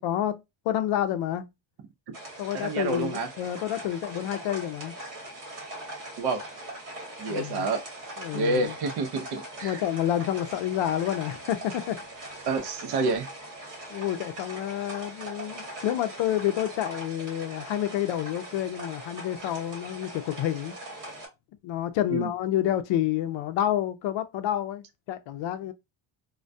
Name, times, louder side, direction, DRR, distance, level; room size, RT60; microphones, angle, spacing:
voice 1, 0.0-1.5 2.4-4.9 7.3-7.7 8.2-8.8 9.6-12.0 13.9-20.8 21.6-25.7, left 11 dB, 70° left, 0.5 m, -29 dB
sound 1, 2.1-21.3, right 1 dB, 40° right, 1.1 m, -41 dB
voice 2, 2.6-3.3 6.2-6.4 7.2-7.8 8.3-9.8 12.5-13.3 22.1-22.3, right 3 dB, 55° right, 0.6 m, -28 dB
2.2 x 2.2 x 2.5 m
cardioid pair, 150°, 47 cm